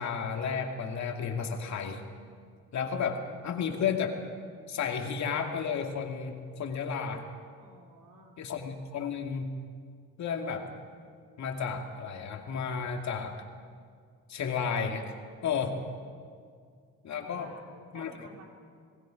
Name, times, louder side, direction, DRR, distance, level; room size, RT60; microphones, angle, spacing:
voice 1, 0.0-2.0 2.7-4.2 4.7-7.2 8.4-9.6 10.2-10.7 11.4-13.4 14.3-15.1 15.4-15.8 17.0-17.5 17.9-18.1, left 6 dB, 65° left, 3 dB, 2.4 m, -32 dB
voice 2, 7.6-8.4 15.5-15.9 17.2-17.7 17.9-18.5, right 2 dB, 90° right, 1 dB, 3.6 m, -53 dB
29.0 x 19.5 x 5.1 m, 2.1 s
cardioid pair, 90°, 30 cm